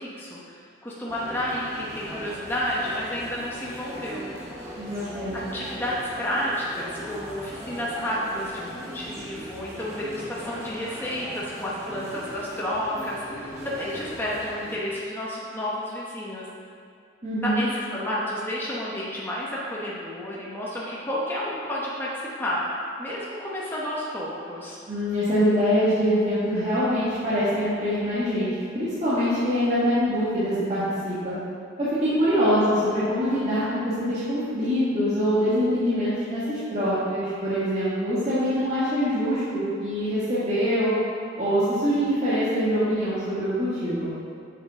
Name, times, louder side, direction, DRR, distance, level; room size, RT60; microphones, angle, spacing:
voice 1, 0.0-4.3 5.3-16.5 17.4-22.7 23.0-24.8, left 1 dB, 10° left, -7 dB, 0.9 m, -31 dB
sound 1, 1.1-14.7, equal, 15° right, 1.0 m, -39 dB
voice 2, 4.7-5.4 17.2-17.6 24.9-31.3 31.8-40.9 41.4-44.1, equal, 35° right, -13 dB, 1.6 m, -24 dB
7.5 x 6.8 x 3.7 m, 2.3 s
head